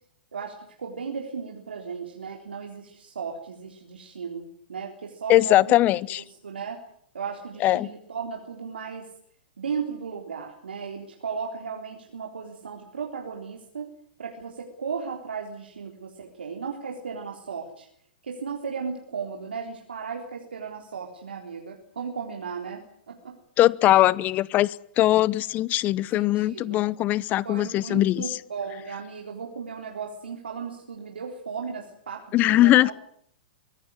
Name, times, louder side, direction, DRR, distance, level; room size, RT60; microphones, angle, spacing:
voice 1, 0.3-5.8 6.4-6.8 7.1-9.1 9.6-13.9 14.2-17.9 18.2-23.4 26.1-26.8 27.4-32.9, right 6 dB, 85° right, 1 dB, 3.7 m, -35 dB
voice 2, 5.3-6.2 7.6-7.9 23.6-28.4 32.3-32.9, left 15 dB, 30° left, 22 dB, 0.9 m, -21 dB
24.0 x 17.0 x 9.8 m, 0.66 s
hypercardioid pair, 120°, 5 cm